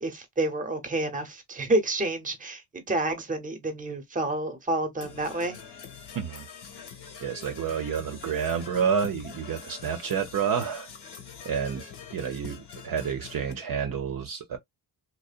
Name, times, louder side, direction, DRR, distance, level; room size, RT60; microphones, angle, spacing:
voice 1, 0.0-5.6, right 2 dB, 20° right, 0.9 m, -29 dB
Percussion / Brass instrument, 5.0-13.5, left 6 dB, 60° left, 1.0 m, -45 dB
voice 2, 6.1-6.5 7.2-10.9 11.4-14.6, right 7 dB, 50° right, 0.7 m, -29 dB
2.7 x 2.1 x 2.4 m
cardioid pair, 80°, 44 cm